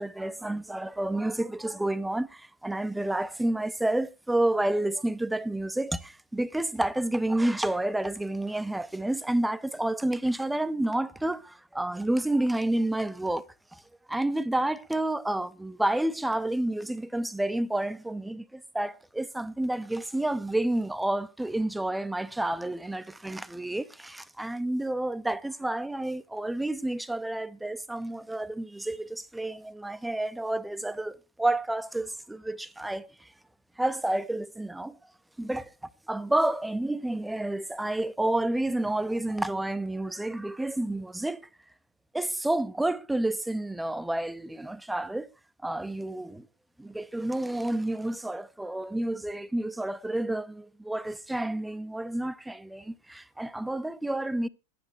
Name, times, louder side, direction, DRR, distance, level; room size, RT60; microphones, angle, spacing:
voice 1, 0.0-13.5 13.7-13.8 14.1-33.3 33.8-35.0 35.4-35.7 36.1-41.5 42.1-45.3 45.6-46.5 46.8-54.5, right 1 dB, 5° right, 0.7 m, -30 dB
11.5 x 10.5 x 4.6 m
figure-of-eight pair, 90°, 0 cm